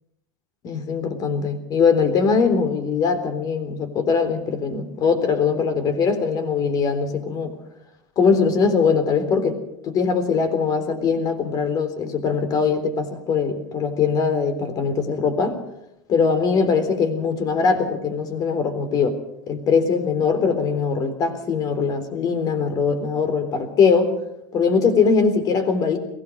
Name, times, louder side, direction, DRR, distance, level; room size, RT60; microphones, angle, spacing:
voice 1, 0.6-7.5 8.2-15.6 16.1-19.2 19.5-24.1 24.5-26.0, left 5 dB, 40° left, 11 dB, 3.6 m, -21 dB
22.5 x 17.5 x 6.6 m, 0.84 s
hypercardioid pair, 90°, 10 cm